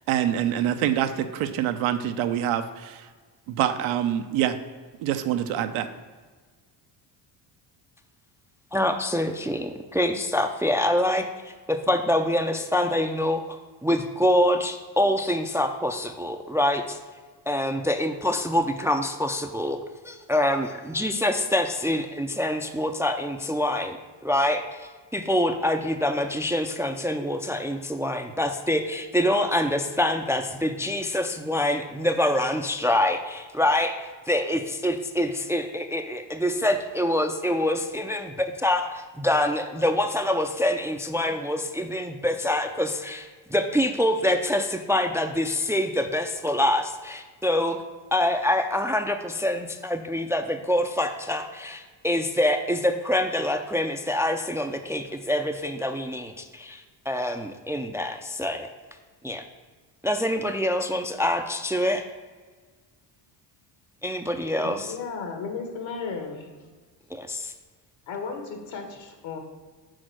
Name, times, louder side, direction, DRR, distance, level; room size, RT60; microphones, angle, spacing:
voice 1, 0.0-3.1 3.5-4.6 5.0-5.9, right 10 dB, 85° right, 8 dB, 0.7 m, -25 dB
voice 2, 8.7-11.3 11.7-17.0 17.5-19.8 20.0-24.0 24.2-47.8 48.1-58.7 59.2-59.4 60.0-62.0 64.0-64.9 67.1-67.5, left 1 dB, 5° right, 6 dB, 0.4 m, -25 dB
voice 3, 64.9-66.5 68.1-69.4, left 5 dB, 70° left, 4 dB, 1.6 m, -34 dB
6.4 x 4.3 x 6.2 m, 1.4 s
cardioid pair, 90°, 48 cm